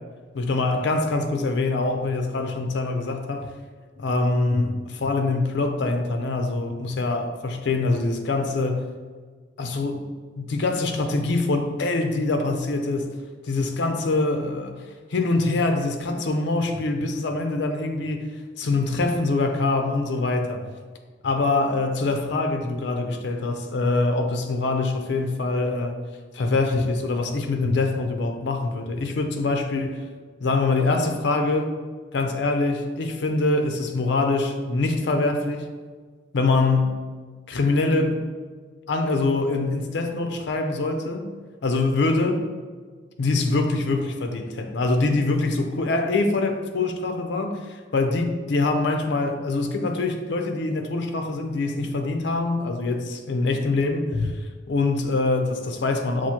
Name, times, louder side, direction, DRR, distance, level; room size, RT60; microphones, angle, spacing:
voice 1, 0.3-3.5 4.0-8.9 9.6-10.1 10.4-13.1 13.4-18.3 18.6-20.7 21.2-26.0 26.3-30.0 30.4-31.7 32.1-35.6 36.3-37.0 37.5-38.2 38.9-41.3 41.6-42.4 43.2-54.4 54.7-56.3, left 3 dB, 65° left, 5 dB, 0.4 m, -24 dB
5.8 x 2.4 x 2.8 m, 1.5 s
head